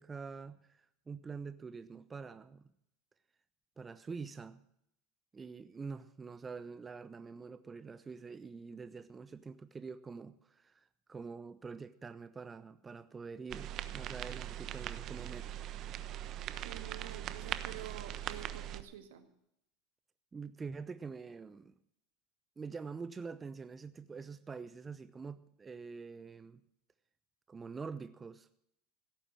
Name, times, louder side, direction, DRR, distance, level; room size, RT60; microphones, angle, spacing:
voice 1, 0.0-2.7 3.8-4.6 5.3-15.6 20.3-21.7 22.6-26.6 27.5-28.5, right 5 dB, 20° right, 0.7 m, -46 dB
sound 1, 13.5-18.8, right 12 dB, 50° right, 1.1 m, -41 dB
voice 2, 16.6-19.2, right 10 dB, 75° right, 2.0 m, -48 dB
16.5 x 8.7 x 7.5 m
hypercardioid pair, 90°, 0 cm